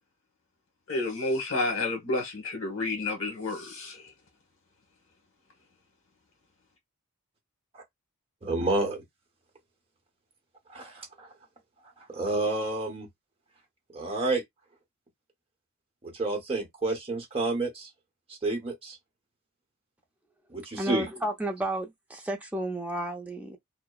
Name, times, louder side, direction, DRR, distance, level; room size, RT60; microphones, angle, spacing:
voice 1, 0.9-4.1, left 2 dB, 60° left, 1.1 m, -30 dB
voice 2, 8.4-9.0 10.7-11.3 12.1-13.1 13.9-14.4 16.0-17.9 18.4-19.0 20.5-21.1, right 2 dB, 25° right, 0.9 m, -29 dB
voice 3, 20.7-23.6, right 1 dB, 5° right, 0.5 m, -32 dB
2.8 x 2.0 x 2.3 m
head